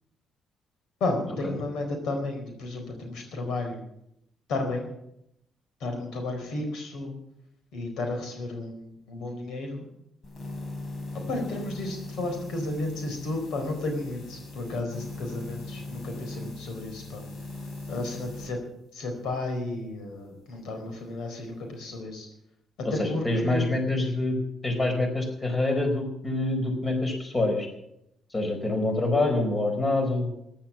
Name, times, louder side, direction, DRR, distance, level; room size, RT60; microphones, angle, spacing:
voice 1, 1.0-3.8 4.5-4.9 5.8-7.1 7.7-9.9 11.1-17.2 17.9-18.6 18.9-22.3 22.8-24.1, left 2 dB, 80° left, 4 dB, 4.4 m, -33 dB
sound 1, 10.2-18.5, left 2 dB, 50° left, 4.6 m, -39 dB
voice 2, 22.8-27.7 28.3-30.3, left 2 dB, 30° left, 4 dB, 4.4 m, -26 dB
15.0 x 11.0 x 7.3 m, 0.78 s
cardioid pair, 90°, 0 cm